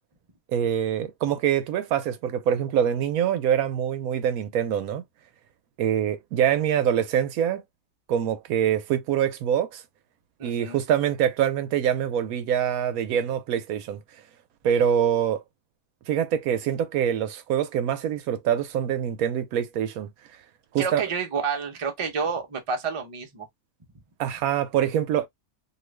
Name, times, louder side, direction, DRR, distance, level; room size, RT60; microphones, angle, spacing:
voice 1, 0.5-5.0 5.8-7.6 8.1-9.8 10.4-14.0 14.6-15.4 16.1-20.1 20.7-21.0 24.2-25.3, right 9 dB, 75° right, 1.0 m, -24 dB
voice 2, 10.4-10.8 20.8-23.5, right 5 dB, 35° right, 0.5 m, -29 dB
2.7 x 2.4 x 3.1 m
omnidirectional pair, 1.6 m